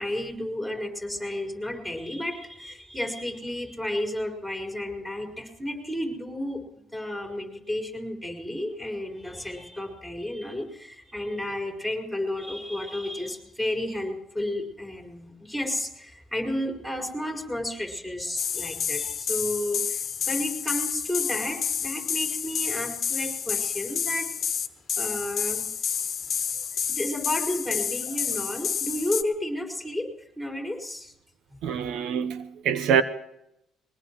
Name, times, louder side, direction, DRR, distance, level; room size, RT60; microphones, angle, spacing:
voice 1, 0.0-6.6 6.9-24.3 25.0-25.7 26.6-31.1, left 1 dB, ahead, 4.9 m, -32 dB
sound 1, 18.4-29.2, left 7 dB, 50° left, 1.3 m, -29 dB
voice 2, 31.6-33.0, right 8 dB, 80° right, 0.9 m, -25 dB
22.5 x 19.5 x 3.1 m
cardioid pair, 110°, 0 cm